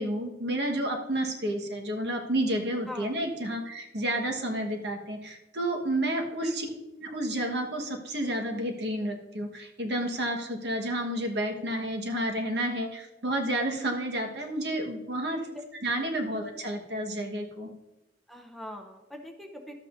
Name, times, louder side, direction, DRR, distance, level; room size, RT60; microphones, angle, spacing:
voice 1, 0.0-6.7 7.0-15.5 15.8-17.7, right 1 dB, 70° right, 2 dB, 1.3 m, -30 dB
voice 2, 18.3-19.8, equal, ahead, 2 dB, 0.7 m, -42 dB
12.5 x 8.1 x 2.6 m, 0.99 s
head